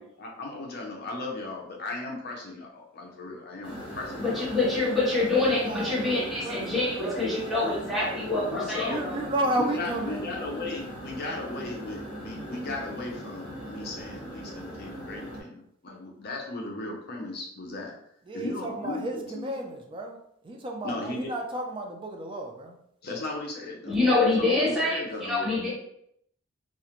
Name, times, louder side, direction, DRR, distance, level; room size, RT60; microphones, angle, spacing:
voice 1, 0.0-4.5 8.5-9.0 9.5-17.9 18.3-19.7 20.8-21.3 23.0-24.0 24.4-25.6, left 2 dB, 50° left, -1 dB, 0.6 m, -36 dB
sound 1, 3.6-15.4, equal, 25° left, 0.8 m, -40 dB
voice 2, 4.2-9.2 23.8-25.7, left 2 dB, ahead, -10 dB, 1.1 m, -26 dB
voice 3, 5.5-8.2 8.9-10.2 18.3-20.2 20.4-22.7 25.1-25.2, right 1 dB, 25° right, 1 dB, 0.3 m, -33 dB
2.4 x 2.1 x 2.9 m, 0.72 s
head